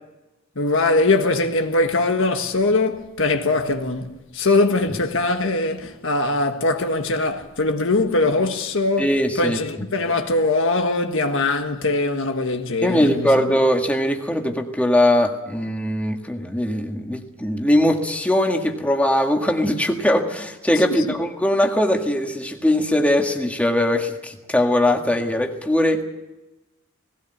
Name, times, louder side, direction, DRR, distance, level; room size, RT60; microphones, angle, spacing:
voice 1, 0.5-9.1 9.4-13.5 20.9-21.2, left 2 dB, 70° left, 1.6 m, -21 dB
voice 2, 9.0-9.6 12.8-26.0, left 1 dB, 5° left, 1.7 m, -20 dB
19.0 x 17.0 x 8.1 m
head